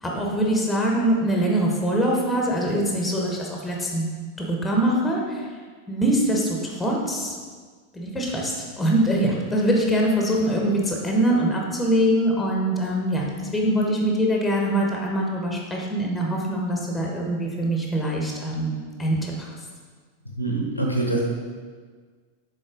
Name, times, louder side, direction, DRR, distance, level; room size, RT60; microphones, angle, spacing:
voice 1, 0.0-4.1 4.5-5.4 5.9-7.3 7.9-13.2 13.5-19.5, right 1 dB, 5° left, -1 dB, 1.1 m, -23 dB
voice 2, 20.3-21.2, right 2 dB, 90° left, -1 dB, 1.0 m, -24 dB
6.5 x 4.1 x 3.8 m, 1.5 s
figure-of-eight pair, 90°, 0 cm